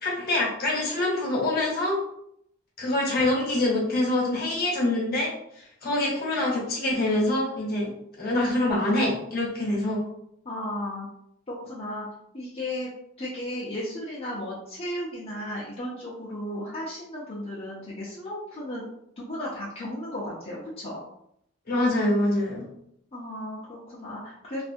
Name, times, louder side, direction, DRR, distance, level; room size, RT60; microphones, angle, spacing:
voice 1, 0.0-2.0 2.8-7.9 8.2-10.0 21.7-22.7, left 1 dB, 50° left, -3 dB, 1.0 m, -25 dB
voice 2, 10.4-11.1 11.5-12.0 12.3-12.9 13.2-21.0 23.1-24.6, left 1 dB, 30° left, -8 dB, 0.6 m, -35 dB
2.6 x 2.4 x 2.6 m, 0.71 s
head